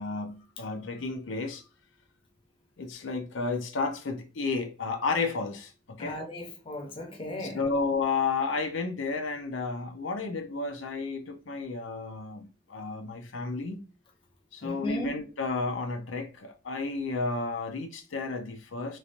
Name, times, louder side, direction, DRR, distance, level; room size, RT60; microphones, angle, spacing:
voice 1, 0.0-1.6 2.8-6.2 7.4-13.8 14.5-19.0, left 4 dB, 85° left, 0.6 m, -32 dB
voice 2, 6.0-7.7 14.6-15.1, left 1 dB, 30° left, 0.7 m, -36 dB
3.1 x 2.5 x 2.8 m
head